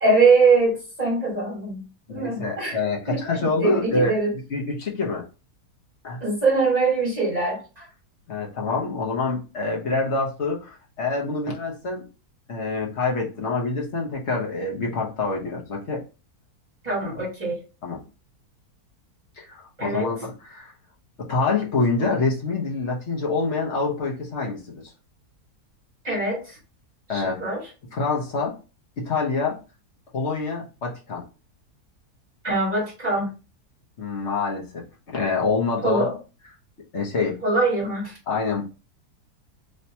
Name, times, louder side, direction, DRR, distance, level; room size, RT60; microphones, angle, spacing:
voice 1, 0.0-2.8 3.1-4.3 6.2-7.8 16.8-17.6 19.8-20.1 26.0-26.6 27.1-27.6 32.4-33.3 35.8-36.1 37.4-38.1, right 3 dB, 25° right, -6 dB, 1.6 m, -22 dB
voice 2, 2.1-4.2 4.5-5.2 6.0-6.2 8.3-12.1 12.5-16.0 17.8-18.0 19.4-20.7 21.2-24.8 27.1-27.4 27.9-28.6 29.0-29.6 30.1-31.2 34.0-36.2 36.9-37.4 38.3-38.7, left 3 dB, 50° left, -1 dB, 1.1 m, -26 dB
3.3 x 2.8 x 2.7 m, 0.32 s
omnidirectional pair, 1.7 m